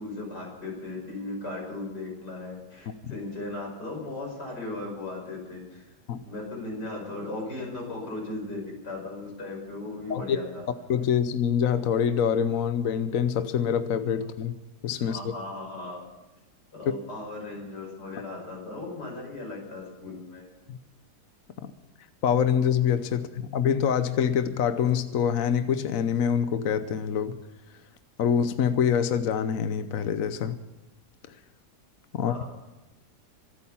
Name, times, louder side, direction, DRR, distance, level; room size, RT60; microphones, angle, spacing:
voice 1, 0.0-6.0 6.2-10.7 14.2-14.3 15.1-16.1 16.7-20.4 32.1-32.5, left 2 dB, 85° left, -1 dB, 6.5 m, -37 dB
voice 2, 10.9-14.6 14.8-15.3 20.7-20.8 21.6-21.7 22.2-27.4 28.2-30.6 32.1-32.4, left 8 dB, 60° left, 11 dB, 1.1 m, -25 dB
25.0 x 8.9 x 5.7 m, 1.1 s
omnidirectional pair, 1.7 m